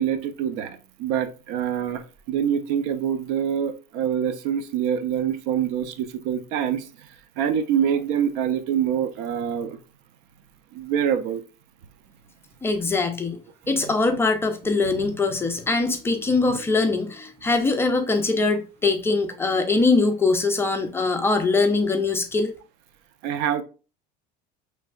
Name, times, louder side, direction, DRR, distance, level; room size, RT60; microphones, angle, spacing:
voice 1, 0.0-9.8 10.7-11.4 13.7-13.8 14.8-15.1 23.2-23.6, right 8 dB, 65° right, 0.5 m, -25 dB
voice 2, 12.6-13.4 13.7-22.5, left 3 dB, 10° left, 0.4 m, -22 dB
5.1 x 3.2 x 2.3 m
cardioid pair, 150°, 19 cm